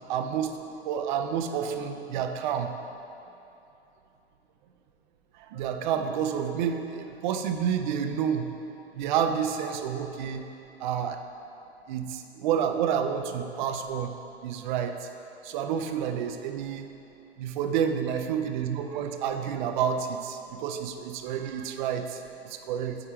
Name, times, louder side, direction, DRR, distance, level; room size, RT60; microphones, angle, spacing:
voice 1, 0.1-0.6 0.8-2.7 5.3-8.5 8.9-10.5 10.8-11.2 11.9-14.1 14.4-15.1 15.4-16.9 17.4-23.0, right 8 dB, 45° right, 6 dB, 0.5 m, -29 dB
5.0 x 4.4 x 4.7 m, 2.9 s
hypercardioid pair, 105°, 33 cm